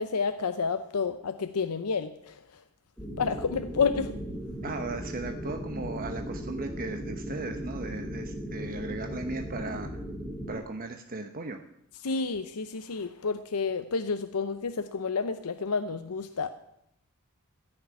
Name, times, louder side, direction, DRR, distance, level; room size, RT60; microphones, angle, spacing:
voice 1, 0.0-2.6 3.2-4.1 12.0-16.5, left 5 dB, 90° left, 9 dB, 0.7 m, -30 dB
sound 1, 3.0-10.6, equal, 5° left, 3.7 m, -37 dB
voice 2, 4.6-10.0 10.5-11.6, right 3 dB, 40° right, 4 dB, 0.9 m, -37 dB
15.0 x 6.7 x 9.6 m, 0.78 s
head